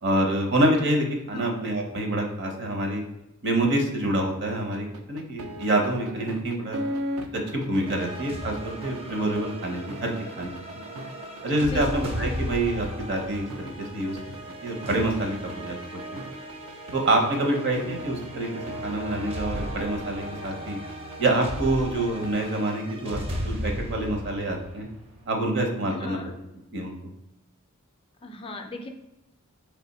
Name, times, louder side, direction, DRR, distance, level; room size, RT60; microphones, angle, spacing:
voice 1, 0.0-3.0 3.4-6.8 7.3-10.6 11.4-14.4 14.6-15.8 16.9-18.5 18.8-20.8 21.2-24.9 25.3-26.2 26.7-26.9, right 1 dB, 55° right, 2 dB, 0.8 m, -26 dB
sound 1, 4.7-23.4, equal, 80° right, 0.5 m, -38 dB
sound 2, 7.8-25.5, equal, 30° right, 0.5 m, -36 dB
voice 2, 25.9-26.3 28.2-28.9, left 2 dB, 25° left, 4 dB, 0.4 m, -37 dB
3.4 x 3.2 x 4.1 m, 0.92 s
head